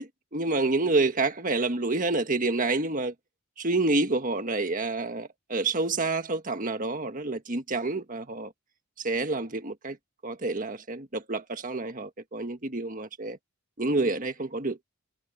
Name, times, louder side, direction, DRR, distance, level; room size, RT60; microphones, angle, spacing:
voice 1, 0.3-3.1 3.6-8.5 9.0-10.0 10.2-13.4 13.8-14.8, right 2 dB, 35° right, 1.5 m, -28 dB
head